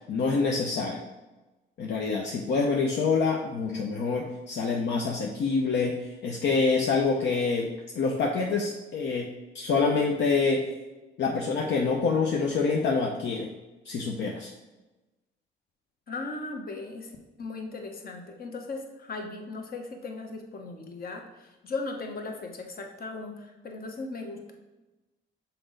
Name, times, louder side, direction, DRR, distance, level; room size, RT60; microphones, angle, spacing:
voice 1, 0.1-1.0 1.8-7.7 7.9-9.3 9.5-10.6 11.2-13.5 13.9-14.5, left 4 dB, 65° left, 0 dB, 0.7 m, -26 dB
voice 2, 16.1-17.1 17.4-24.5, left 3 dB, 50° left, 3 dB, 1.0 m, -37 dB
5.9 x 4.0 x 3.9 m, 1.1 s
cardioid pair, 90°, 20 cm